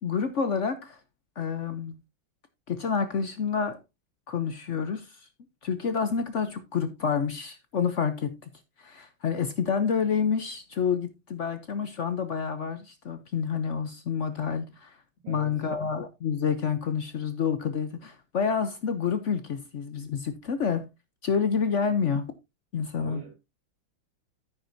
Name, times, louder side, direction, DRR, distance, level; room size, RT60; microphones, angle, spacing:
voice 1, 0.0-1.0 1.4-2.0 2.7-3.8 4.3-5.3 5.6-8.4 8.8-15.0 15.3-20.9 21.2-22.3 22.7-23.2, left 6 dB, 75° left, 0.6 m, -28 dB
voice 2, 15.2-15.7 23.0-23.4, right 3 dB, 55° right, 3.0 m, -41 dB
9.6 x 9.4 x 2.6 m
omnidirectional pair, 2.3 m